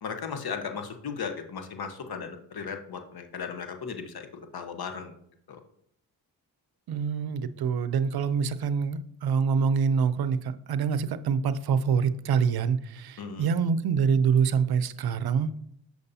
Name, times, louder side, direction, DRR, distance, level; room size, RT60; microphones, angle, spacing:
voice 1, 0.0-5.1 5.5-5.6 13.2-13.5, left 6 dB, 55° left, 6 dB, 1.1 m, -36 dB
voice 2, 6.9-15.5, right 6 dB, 60° right, 14 dB, 0.6 m, -25 dB
6.5 x 6.4 x 2.8 m, 0.70 s
supercardioid pair, 45°, 43 cm